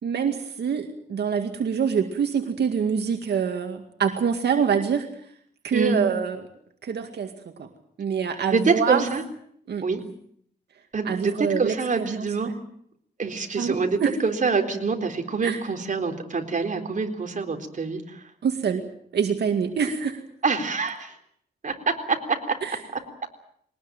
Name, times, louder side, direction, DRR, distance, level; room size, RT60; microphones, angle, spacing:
voice 1, 0.0-5.1 5.6-6.4 6.8-7.7 8.0-9.0 9.7-9.8 11.1-12.5 13.6-14.1 15.4-15.6 18.4-18.9 19.1-20.2 22.6-22.8, right 7 dB, 85° right, 5 dB, 2.2 m, -25 dB
voice 2, 8.5-9.2 9.8-10.0 10.9-12.5 13.2-18.2 20.4-21.1 21.6-22.6, right 4 dB, 50° right, 4 dB, 3.9 m, -25 dB
22.5 x 19.5 x 9.0 m, 0.65 s
wide cardioid pair, 100°, 17 cm